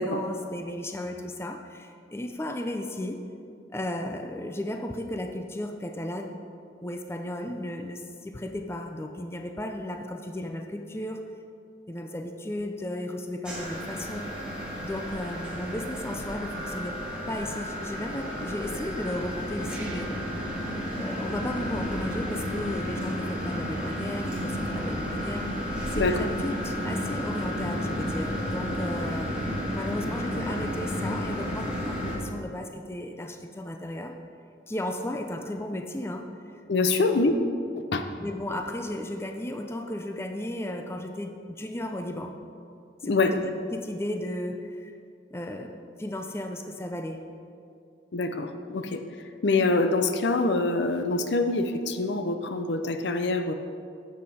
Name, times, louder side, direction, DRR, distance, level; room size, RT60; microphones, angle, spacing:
voice 1, 0.0-3.2 3.7-6.4 6.8-11.2 11.9-14.3 14.8-17.0 17.3-20.1 21.0-34.1 34.7-36.3 36.8-37.0 38.2-42.3 43.0-44.9 45.3-47.2, left 1 dB, 15° left, 5 dB, 0.4 m, -35 dB
sound 1, 13.4-32.1, equal, 5° right, 2.0 m, -32 dB
voice 2, 36.7-37.4 37.8-38.0 43.0-43.3 48.1-49.0 49.4-53.5, left 3 dB, 70° left, 8 dB, 0.6 m, -25 dB
11.5 x 7.5 x 4.2 m, 2.5 s
head